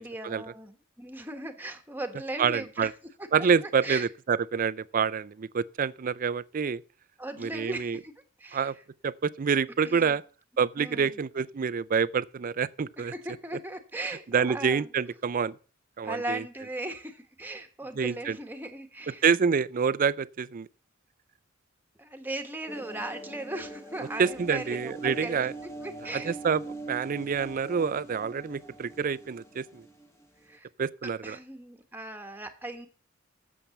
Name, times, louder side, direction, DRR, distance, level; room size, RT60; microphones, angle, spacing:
voice 1, 0.0-2.9 3.2-4.1 7.2-8.1 8.4-8.8 9.8-10.2 10.8-11.1 13.0-14.9 16.0-19.2 22.0-26.4 30.4-30.7 31.0-32.9, right 1 dB, 10° right, 1.2 m, -38 dB
voice 2, 2.4-2.9 3.3-6.8 7.4-8.0 8.5-8.7 9.0-10.2 10.6-13.1 14.3-15.6 16.0-16.4 18.0-18.4 19.2-20.7 24.2-25.5 26.1-26.6 26.9-29.9 30.8-31.4, right 6 dB, 45° right, 0.4 m, -27 dB
sound 1, 22.7-30.6, right 2 dB, 15° left, 1.0 m, -43 dB
8.6 x 7.4 x 7.0 m
head